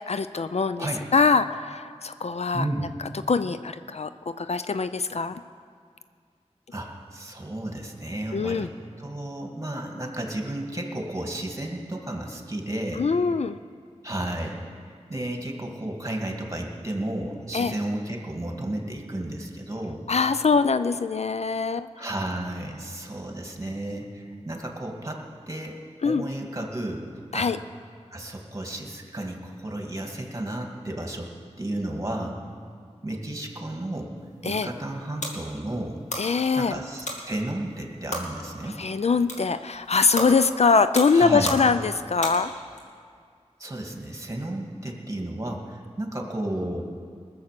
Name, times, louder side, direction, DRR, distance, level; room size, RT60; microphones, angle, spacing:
voice 1, 0.1-0.9 1.1-2.6 3.3-4.1 4.4-5.4 8.3-8.7 13.0-13.6 17.5-17.7 20.1-21.9 26.0-26.2 27.3-27.6 34.4-34.7 36.2-36.8 38.8-42.5, left 4 dB, 65° left, 12 dB, 0.4 m, -23 dB
voice 2, 2.5-2.9 6.7-8.7 9.0-13.1 14.0-20.0 22.0-25.8 26.0-27.5 28.1-31.3 31.6-32.4 33.0-34.1 34.4-36.0 36.6-38.8 41.1-41.6 43.6-46.8, right 1 dB, 25° right, 1 dB, 2.2 m, -33 dB
sound 1, 34.2-42.8, left 1 dB, 85° left, 1.9 m, -36 dB
20.0 x 7.1 x 6.7 m, 2.2 s
wide cardioid pair, 50°, 12 cm